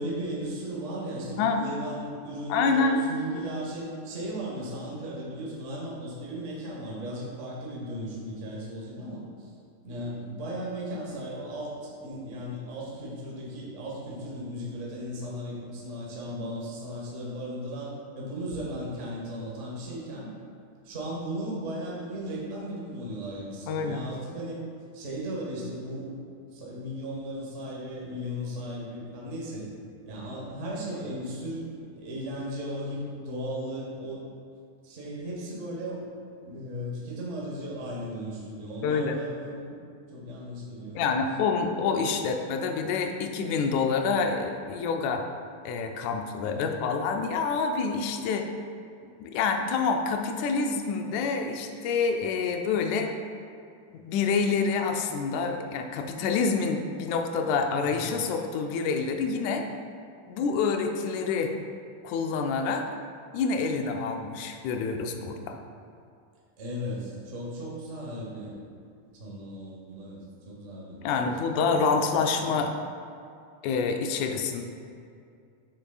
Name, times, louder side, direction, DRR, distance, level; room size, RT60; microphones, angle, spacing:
voice 1, 0.0-9.5 9.8-20.3 20.8-24.6 24.9-26.1 26.5-29.7 30.0-34.2 34.8-36.0 36.4-39.7 40.1-41.2 46.5-46.6 57.8-58.2 66.6-68.5 69.2-71.0 71.2-72.0 72.4-72.5, equal, 65° right, -4 dB, 0.7 m, -36 dB
voice 2, 1.4-1.7 2.5-3.0 23.7-24.0 38.8-39.2 41.0-45.3 45.7-48.5 49.2-53.1 53.9-59.7 60.3-61.5 62.0-62.9 63.3-65.6 71.0-72.7 73.6-74.6, left 5 dB, 80° left, 5 dB, 2.0 m, -27 dB
7.6 x 6.9 x 2.3 m, 2.4 s
omnidirectional pair, 3.4 m